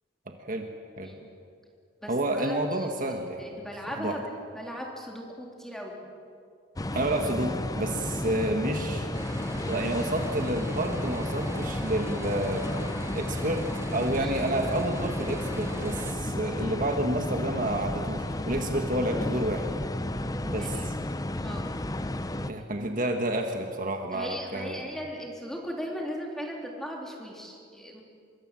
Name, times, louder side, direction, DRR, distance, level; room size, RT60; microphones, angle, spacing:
voice 1, 0.3-0.7 1.0-1.1 2.1-3.6 3.9-4.2 6.9-9.1 9.6-19.7 20.4-20.9 22.4-24.8, right 1 dB, 40° right, 4 dB, 1.6 m, -30 dB
voice 2, 2.0-2.9 3.4-6.0 14.2-14.3 20.6-20.9 21.4-21.7 24.1-28.0, equal, ahead, -1 dB, 3.6 m, -38 dB
sound 1, 6.8-22.5, left 1 dB, 20° left, 0.7 m, -32 dB
sound 2, 9.1-16.1, right 1 dB, 15° right, 0.8 m, -40 dB
25.0 x 23.0 x 7.7 m, 2.4 s
head